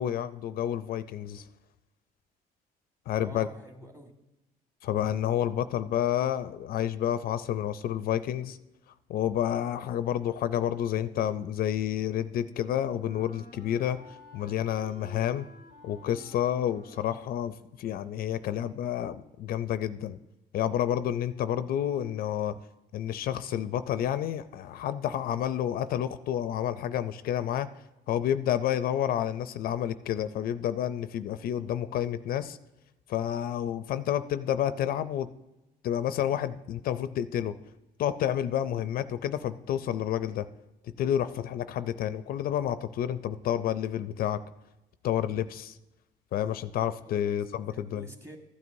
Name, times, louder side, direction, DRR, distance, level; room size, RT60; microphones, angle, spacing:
voice 1, 0.0-1.5 3.1-3.5 4.8-8.6 9.1-15.5 15.8-20.2 20.5-22.6 22.9-27.7 28.1-32.6 33.1-35.3 35.8-37.6 38.0-40.5 41.0-44.4 45.0-45.8 46.3-48.1, left 10 dB, 60° left, 13 dB, 0.4 m, -30 dB
voice 2, 3.2-4.1 47.0-48.4, right 2 dB, 15° right, 3 dB, 1.5 m, -49 dB
Wind instrument woodwind instrument, 11.7-18.6, equal, 50° right, 1.9 m, -54 dB
14.5 x 9.4 x 2.6 m, 0.98 s
cardioid pair, 110°, 17 cm